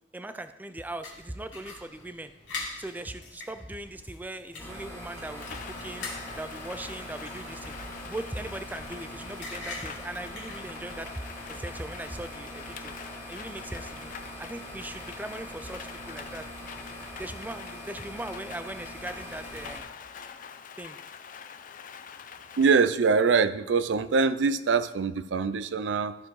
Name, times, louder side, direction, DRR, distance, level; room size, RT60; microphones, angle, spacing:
voice 1, 0.1-2.3 2.8-6.1 6.3-7.8 8.0-11.1 11.5-12.9 13.3-14.1 14.4-16.5 17.2-19.8 20.8-21.0, right 1 dB, 10° right, 10 dB, 0.4 m, -39 dB
sound 1, 1.0-11.1, left 3 dB, 70° left, 2.2 m, -44 dB
sound 2, 4.6-19.8, equal, 15° left, 2.0 m, -42 dB
Rain, 5.3-22.8, left 7 dB, 45° left, 0.5 m, -45 dB
voice 2, 22.6-26.1, right 5 dB, 75° right, 13 dB, 0.4 m, -24 dB
13.0 x 4.5 x 4.8 m, 0.97 s
head